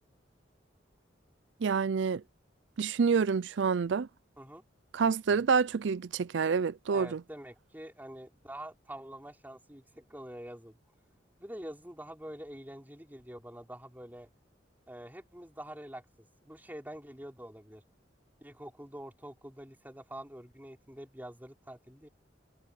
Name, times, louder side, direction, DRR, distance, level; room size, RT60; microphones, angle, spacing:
voice 1, 1.6-2.2 2.8-4.1 4.9-7.2, right 5 dB, 70° right, 0.4 m, -27 dB
voice 2, 5.0-5.5 6.9-10.8 11.4-14.3 14.9-16.0 16.4-17.8 18.4-22.1, right 1 dB, 10° right, 4.6 m, -46 dB
head